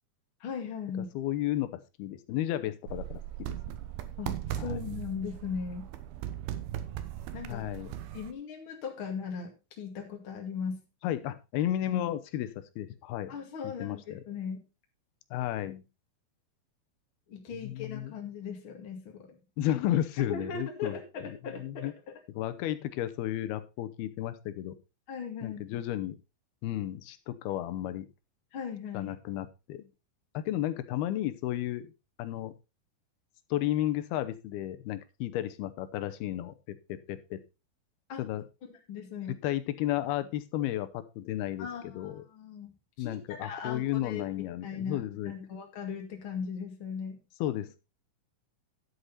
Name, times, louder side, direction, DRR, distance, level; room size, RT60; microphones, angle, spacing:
voice 1, 0.4-1.1 4.2-5.9 7.3-7.6 8.1-9.5 9.8-10.8 13.3-14.6 17.3-19.4 20.2-22.1 25.1-25.6 28.5-29.1 38.1-38.2 38.6-39.4 41.6-42.7 43.0-44.2 44.6-47.2, left 6 dB, 40° left, 1 dB, 2.5 m, -38 dB
voice 2, 1.1-3.6 4.6-4.8 7.5-7.9 11.0-13.3 13.6-14.2 15.3-15.9 17.6-18.1 19.6-21.3 21.6-21.9 22.4-24.8 25.4-26.2 26.6-28.1 28.9-29.9 30.3-31.9 32.2-32.5 33.5-37.4 38.2-38.4 39.4-42.2 43.0-45.5 47.4-47.8, left 13 dB, 90° left, 12 dB, 2.8 m, -33 dB
sound 1, 2.9-8.3, right 11 dB, 85° right, 2.8 m, -38 dB
11.5 x 8.2 x 4.1 m, 0.29 s
omnidirectional pair, 4.4 m